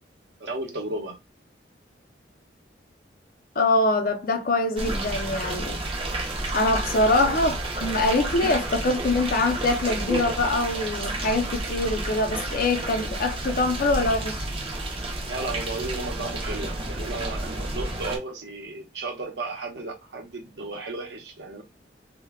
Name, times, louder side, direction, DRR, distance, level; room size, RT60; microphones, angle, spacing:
voice 1, 0.4-1.2 5.5-5.6 7.0-7.4 15.2-21.6, right 2 dB, 65° right, 0.8 m, -34 dB
voice 2, 3.6-5.8 6.5-14.4, left 2 dB, 50° left, 0.5 m, -24 dB
sound 1, 4.8-18.2, right 2 dB, 30° right, 0.5 m, -31 dB
2.2 x 2.0 x 3.4 m
head